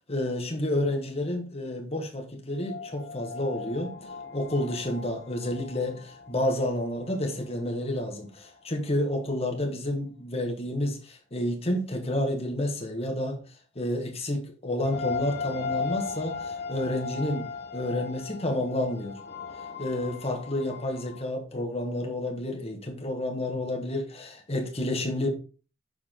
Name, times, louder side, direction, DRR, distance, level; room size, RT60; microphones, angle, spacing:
voice 1, 0.1-3.9 4.3-13.4 13.7-19.2 19.8-25.3, left 1 dB, 30° left, 1.6 m, -30 dB
sound 1, 2.5-8.1 8.5-8.6 14.8-21.2, left 5 dB, 55° left, 1.1 m, -37 dB
7.0 x 4.9 x 3.8 m
head